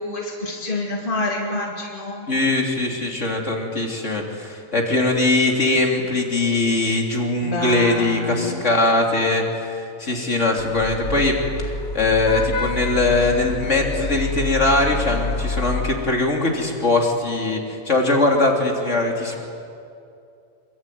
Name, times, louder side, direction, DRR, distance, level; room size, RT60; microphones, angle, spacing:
voice 1, 0.0-2.3 7.4-8.7, left 2 dB, 35° left, -1 dB, 3.0 m, -27 dB
voice 2, 2.3-11.4 11.6-19.5, left 2 dB, 55° left, 0 dB, 3.6 m, -21 dB
Vehicle horn car horn honking / Traffic noise roadway noise, 10.6-15.9, left 3 dB, 80° left, 2.0 m, -28 dB
27.0 x 23.0 x 9.4 m, 2.6 s
omnidirectional pair, 1.5 m